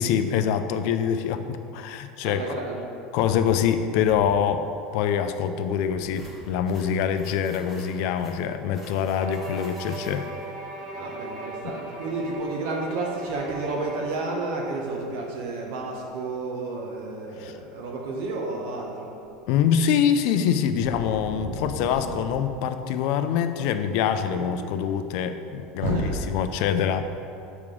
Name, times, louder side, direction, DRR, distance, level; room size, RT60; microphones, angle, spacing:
voice 1, 0.0-2.6 3.1-10.3 11.6-11.8 17.4-17.6 19.5-27.0, left 8 dB, 55° left, 9 dB, 0.4 m, -25 dB
voice 2, 2.2-2.9 11.0-19.1 20.8-22.1 24.3-24.6 25.8-26.2, right 2 dB, 65° right, -1 dB, 0.9 m, -31 dB
sound 1, 6.1-10.5, equal, 5° right, 1.3 m, -50 dB
Bowed string instrument, 9.1-14.5, right 1 dB, 25° right, 1.4 m, -38 dB
6.7 x 3.6 x 6.1 m, 2.7 s
cardioid pair, 170°, 0 cm